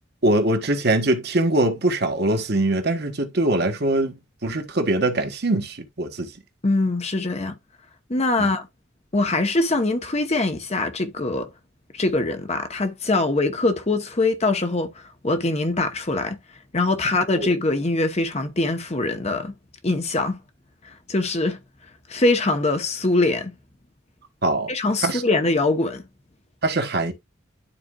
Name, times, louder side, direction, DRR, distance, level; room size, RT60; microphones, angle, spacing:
voice 1, 0.2-4.1 4.4-6.3 8.4-8.5 17.3-17.5 24.4-24.7 25.0-25.2 26.6-27.1, right 2 dB, 55° right, 1.3 m, -22 dB
voice 2, 6.6-7.5 8.1-8.7 9.1-11.5 11.9-16.4 16.7-19.5 19.8-20.4 21.1-21.6 22.1-23.5 24.7-26.0, left 2 dB, 35° left, 1.0 m, -23 dB
12.0 x 4.3 x 2.4 m
head